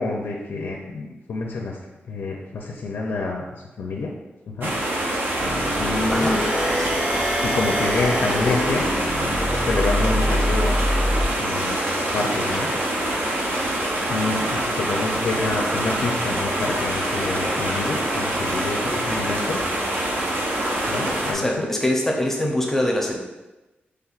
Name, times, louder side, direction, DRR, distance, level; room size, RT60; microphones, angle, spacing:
voice 1, 0.0-1.8 2.1-3.5 3.8-4.1 4.5-4.7 5.8-6.4 7.4-8.8 9.6-10.7 11.4-11.8 12.1-12.7 14.1-19.6 20.9-21.7, left 3 dB, 80° left, -1 dB, 0.5 m, -27 dB
sound 1, 4.6-21.3, right 1 dB, 65° right, 0.7 m, -25 dB
sound 2, 5.4-11.3, equal, 30° right, 0.9 m, -25 dB
voice 2, 6.1-6.4 6.8-7.0 21.2-23.1, left 1 dB, 10° left, -1 dB, 0.6 m, -24 dB
5.8 x 3.3 x 2.4 m, 1.1 s
wide cardioid pair, 180°, 4 cm